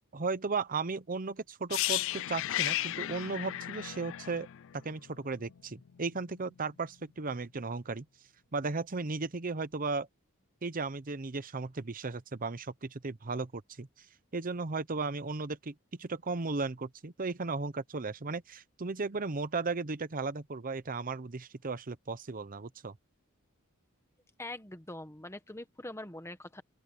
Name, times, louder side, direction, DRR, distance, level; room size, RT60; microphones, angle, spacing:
voice 1, 0.1-4.5 4.7-8.1 8.5-10.1 10.6-14.1 14.3-23.0, right 3 dB, 40° right, 0.8 m, -35 dB
sound 1, 1.7-5.6 5.8-6.0, left 15 dB, 65° left, 0.4 m, -34 dB
voice 2, 24.4-26.6, left 1 dB, 15° left, 1.3 m, -43 dB
open air
head